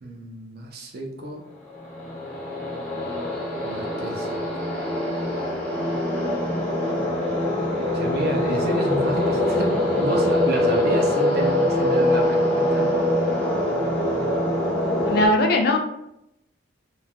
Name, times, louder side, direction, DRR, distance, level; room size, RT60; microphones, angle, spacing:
voice 1, 0.0-1.4 3.6-4.4 7.9-12.9, right 1 dB, 55° right, 2 dB, 0.5 m, -30 dB
sound 1, 1.7-15.3, left 1 dB, 10° left, 0.8 m, -23 dB
voice 2, 15.1-15.8, left 1 dB, 50° left, 4 dB, 0.4 m, -19 dB
3.1 x 2.2 x 2.4 m, 0.80 s
head